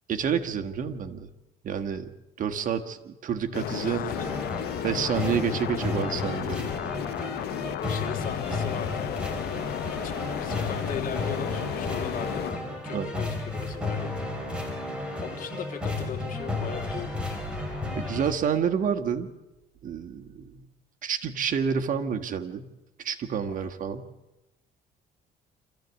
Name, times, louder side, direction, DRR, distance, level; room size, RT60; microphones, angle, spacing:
voice 1, 0.1-1.3 1.6-2.1 2.4-4.1 4.8-6.7 12.9-13.1 17.9-19.3 19.8-20.6 21.0-22.7 23.0-24.0, right 7 dB, 50° right, 6 dB, 1.6 m, -29 dB
sound 1, 3.5-12.5, left 12 dB, 70° left, 0.9 m, -33 dB
voice 2, 3.7-4.3 7.5-9.2 9.9-14.3 15.2-17.4 23.6-23.7, left 7 dB, 55° left, 4 dB, 3.1 m, -39 dB
sound 2, 4.1-18.3, left 2 dB, 5° right, 5.1 m, -33 dB
26.0 x 15.0 x 8.3 m, 0.99 s
cardioid pair, 110°, 17 cm